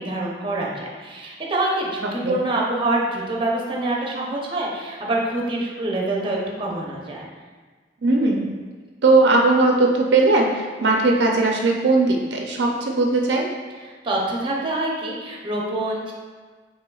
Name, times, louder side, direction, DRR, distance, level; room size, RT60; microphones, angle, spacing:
voice 1, 0.0-7.3 13.8-16.1, right 2 dB, 30° right, -3 dB, 0.7 m, -26 dB
voice 2, 8.0-8.6 9.0-13.5, right 2 dB, 75° right, 0 dB, 0.5 m, -18 dB
5.7 x 3.5 x 2.3 m, 1.4 s
head